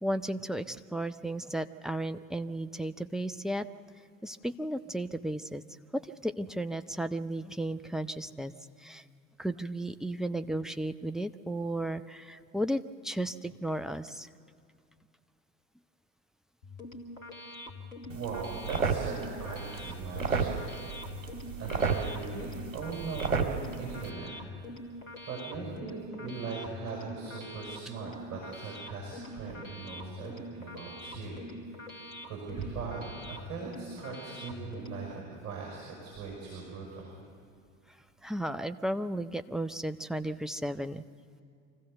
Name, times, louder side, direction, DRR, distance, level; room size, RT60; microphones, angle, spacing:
voice 1, 0.0-3.7 4.2-5.6 5.9-8.5 8.8-9.0 9.4-14.3 38.2-41.0, right 1 dB, ahead, 9 dB, 0.4 m, -34 dB
sound 1, 16.6-35.1, left 1 dB, 90° left, 1.7 m, -45 dB
voice 2, 18.1-20.6 21.2-24.3 24.8-24.9 25.3-31.4 32.2-37.1, right 4 dB, 45° right, -2 dB, 5.6 m, -40 dB
sound 2, 18.1-24.1, right 5 dB, 75° right, 1.6 m, -33 dB
25.5 x 14.5 x 6.8 m, 2.4 s
figure-of-eight pair, 65°, 39 cm